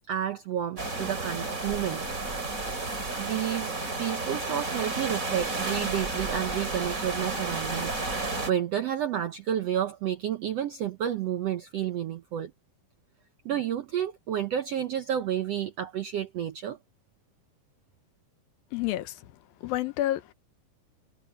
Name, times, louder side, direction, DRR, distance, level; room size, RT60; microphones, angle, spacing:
voice 1, 0.1-2.0 3.2-7.9 8.5-12.5 13.4-16.8, right 10 dB, 75° right, 1.4 m, -30 dB
sound 1, 0.8-8.5, right 3 dB, 20° right, 3.9 m, -32 dB
voice 2, 18.7-19.3 19.6-20.3, left 14 dB, 90° left, 2.8 m, -29 dB
omnidirectional pair, 4.1 m